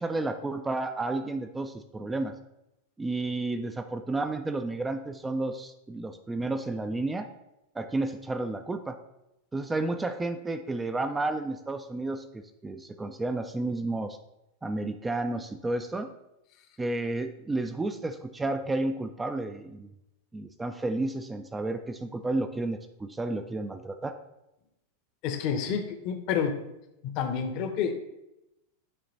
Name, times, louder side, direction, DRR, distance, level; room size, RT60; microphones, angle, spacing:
voice 1, 0.0-2.3 3.0-7.3 7.8-9.0 9.5-14.2 14.6-16.1 16.8-19.9 20.3-24.1, right 2 dB, 10° right, 7 dB, 0.4 m, -31 dB
voice 2, 25.2-26.6 27.0-27.9, left 7 dB, 40° left, 7 dB, 0.7 m, -29 dB
8.6 x 3.0 x 4.0 m, 0.90 s
figure-of-eight pair, 90°, 0 cm